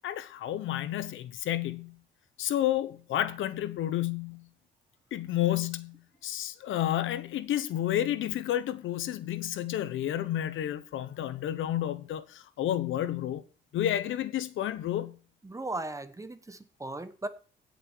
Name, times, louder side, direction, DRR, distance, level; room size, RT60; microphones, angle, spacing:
voice 1, 0.0-2.0 2.4-4.4 5.1-13.4 13.7-15.2, left 12 dB, 80° left, 1.1 m, -31 dB
voice 2, 15.4-17.3, right 2 dB, 15° right, 1.1 m, -37 dB
16.5 x 6.6 x 4.6 m
cardioid pair, 90°, 20 cm